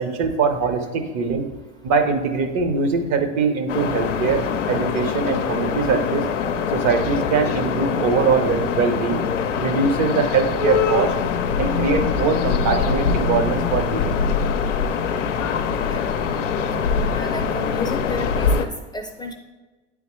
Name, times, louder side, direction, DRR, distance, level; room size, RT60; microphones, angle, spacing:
voice 1, 0.0-1.4 1.8-6.2 6.7-9.2 9.6-11.1 11.6-14.1, right 5 dB, 50° right, 8 dB, 0.8 m, -22 dB
sound 1, 3.7-18.7, left 6 dB, 90° left, 0.5 m, -23 dB
voice 2, 17.1-19.3, left 2 dB, 10° left, 3 dB, 0.5 m, -32 dB
9.1 x 3.6 x 3.1 m, 1.2 s
hypercardioid pair, 85°, 36 cm